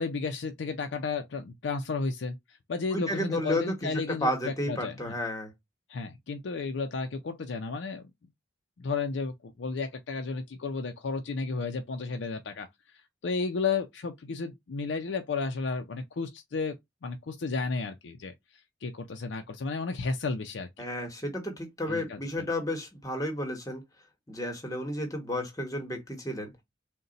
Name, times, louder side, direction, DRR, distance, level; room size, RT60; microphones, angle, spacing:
voice 1, 0.0-5.2 5.9-8.1 8.8-12.7 12.9-16.7 17.0-18.3 18.8-20.9 21.9-22.5, left 4 dB, 75° left, 0.5 m, -33 dB
voice 2, 2.9-5.5 20.8-23.8 24.3-26.5, left 1 dB, 20° left, 1.0 m, -32 dB
3.9 x 2.2 x 3.8 m
head